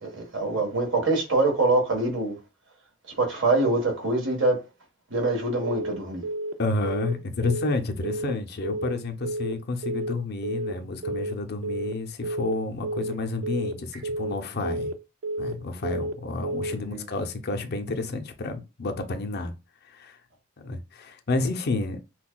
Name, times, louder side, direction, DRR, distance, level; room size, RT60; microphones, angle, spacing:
voice 1, 0.0-2.4 3.2-4.6 5.1-6.2 16.9-17.0, right 2 dB, 65° right, 1.3 m, -24 dB
Telephone, 5.6-5.9 6.2-6.5 6.8-7.1 7.4-7.7 8.0-8.3 8.6-8.9 9.2-9.5 9.8-10.1 10.4-10.7 11.0-11.3 11.6-11.9 12.2-12.5 12.8-13.1 13.4-13.7 14.0-14.3 14.6-14.9 15.2-15.5 15.8-16.1 16.4-16.7, right 1 dB, 90° right, 0.4 m, -30 dB
voice 2, 6.6-14.9 15.4-19.5 19.8-20.2 20.6-22.0, left 3 dB, 55° left, 0.6 m, -30 dB
5.7 x 2.3 x 2.2 m
head